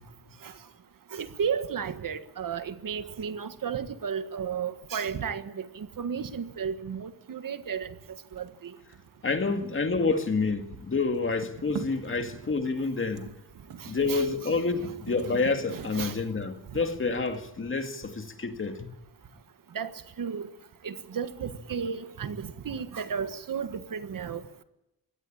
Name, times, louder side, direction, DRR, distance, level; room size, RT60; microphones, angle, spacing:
voice 1, 1.1-8.7 13.8-14.5 14.8-14.9 15.2-15.3 15.7-16.2 19.7-19.9 20.2-20.5 20.8-24.4, right 7 dB, 60° right, 1.6 m, -34 dB
sound 1, 8.3-10.5 10.8-18.1, right 6 dB, 85° right, 2.6 m, -44 dB
voice 2, 9.2-13.3 13.9-18.9, left 4 dB, 35° left, 2.1 m, -28 dB
23.0 x 17.5 x 8.8 m
wide cardioid pair, 180°, 37 cm